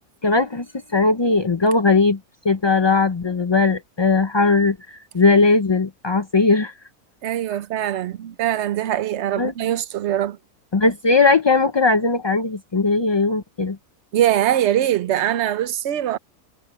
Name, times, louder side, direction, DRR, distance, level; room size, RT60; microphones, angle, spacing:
voice 1, 0.2-0.7 0.9-2.2 2.4-6.7 9.4-9.5 10.7-13.8, left 3 dB, 45° left, 0.3 m, -18 dB
voice 2, 7.2-10.4 14.1-16.2, right 11 dB, 55° right, 0.9 m, -22 dB
omnidirectional pair, 1.7 m